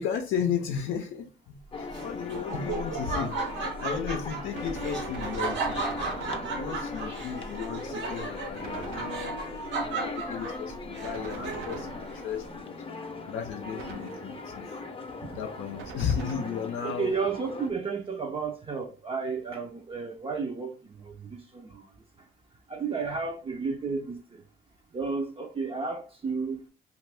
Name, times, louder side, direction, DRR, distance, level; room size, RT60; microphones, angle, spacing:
voice 1, 0.0-3.4 3.8-5.9 6.5-14.8 15.3-17.1, left 7 dB, 85° left, 0.5 m, -34 dB
sound 1, 1.7-17.7, left 3 dB, 25° left, 0.6 m, -39 dB
Laughter, 1.9-11.9, right 4 dB, 70° right, 0.9 m, -35 dB
Gunshot gunfire, 4.5-7.0 8.6-9.7 11.0-12.5 13.8-14.6 15.8-16.9, right 6 dB, 90° right, 0.5 m, -43 dB
voice 2, 16.8-21.8 22.7-24.4 24.9-26.6, right 5 dB, 30° right, 0.4 m, -32 dB
2.6 x 2.4 x 3.2 m
cardioid pair, 90°, 20 cm